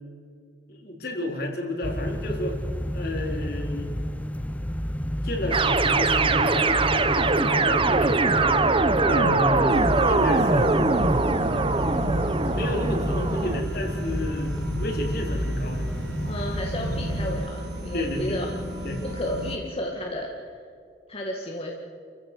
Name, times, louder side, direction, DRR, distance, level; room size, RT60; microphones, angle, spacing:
voice 1, 0.7-2.6 2.9-3.9 5.2-8.7 9.0-10.8 12.4-15.9 16.8-16.9 17.9-18.4 18.8-19.0, left 1 dB, 60° left, 1 dB, 4.0 m, -31 dB
sound 1, 1.8-17.5, equal, 10° left, 0.7 m, -30 dB
sound 2, 5.5-13.6, right 3 dB, 30° right, 1.0 m, -22 dB
sound 3, 9.7-19.6, right 1 dB, 80° right, 3.2 m, -35 dB
voice 2, 16.3-18.5 19.0-20.5 21.1-21.8, left 1 dB, 35° left, -1 dB, 2.0 m, -32 dB
29.0 x 15.5 x 6.9 m, 2.3 s
head